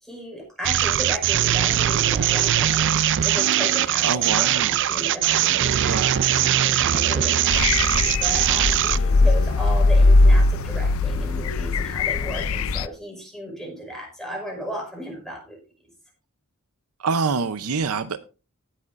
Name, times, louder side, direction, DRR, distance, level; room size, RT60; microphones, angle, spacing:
voice 1, 0.0-15.6, equal, ahead, -1 dB, 5.6 m, -35 dB
sound 1, 0.6-9.0, right 11 dB, 55° right, 0.4 m, -21 dB
voice 2, 4.0-4.8 5.8-6.2 17.0-18.2, right 5 dB, 90° right, 11 dB, 0.7 m, -25 dB
Wind instrument woodwind instrument, 6.1-10.9, left 2 dB, 40° left, 7.8 m, -42 dB
sound 2, 7.5-12.9, left 2 dB, 65° left, 0.5 m, -19 dB
18.5 x 8.6 x 2.6 m, 0.33 s
head